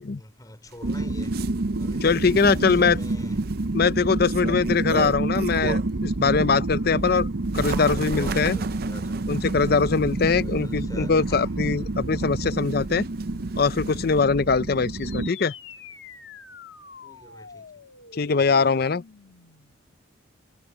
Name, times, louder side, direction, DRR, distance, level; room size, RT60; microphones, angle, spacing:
voice 1, 0.0-1.4 1.8-3.4 4.4-4.7 7.6-9.2 10.1-11.7 17.0-17.8, left 1 dB, 20° left, 3.1 m, -45 dB
Bird, 0.7-6.1 6.5-14.2, right 5 dB, 50° right, 0.5 m, -37 dB
sound 1, 0.8-15.3, right 2 dB, 70° right, 0.9 m, -28 dB
voice 2, 2.0-3.0 3.7-7.3 7.5-8.6 9.3-13.1 13.6-15.5 18.1-19.0, left 5 dB, 55° left, 0.5 m, -22 dB
sound 2, 14.8-19.8, left 6 dB, 75° left, 1.5 m, -45 dB
head